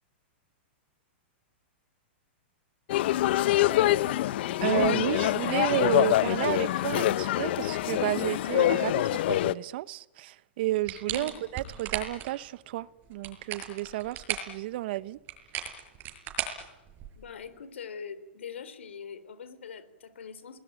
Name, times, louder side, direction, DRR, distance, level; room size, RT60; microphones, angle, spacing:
sound 1, 2.9-9.5, left 14 dB, 60° left, 0.9 m, -25 dB
voice 1, 4.6-15.2, right 16 dB, 55° right, 1.0 m, -31 dB
sound 2, 10.9-12.3 13.1-14.6 15.3-17.3, right 9 dB, 30° right, 6.7 m, -36 dB
voice 2, 11.1-11.4 17.2-20.6, left 6 dB, 85° left, 3.6 m, -42 dB
29.0 x 20.5 x 9.0 m
hypercardioid pair, 130°, 6 cm